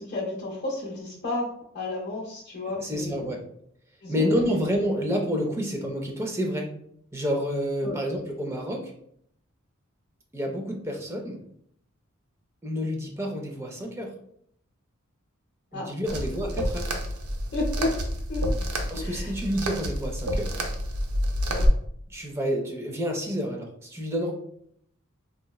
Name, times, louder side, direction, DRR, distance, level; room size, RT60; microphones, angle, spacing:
voice 1, 0.0-3.2 4.0-4.3 7.8-7.9 15.7-16.2 17.5-18.0 18.3-18.5 19.0-19.3 21.5-21.7, left 2 dB, 50° left, -6 dB, 0.6 m, -32 dB
voice 2, 2.8-3.4 4.1-6.7 7.1-8.9 10.3-11.4 12.6-14.1 15.7-16.9 18.9-20.6 22.1-24.3, equal, 10° right, 2 dB, 0.4 m, -29 dB
sound 1, 16.1-21.7, equal, 85° right, 0.5 m, -29 dB
3.8 x 2.1 x 2.2 m, 0.68 s
head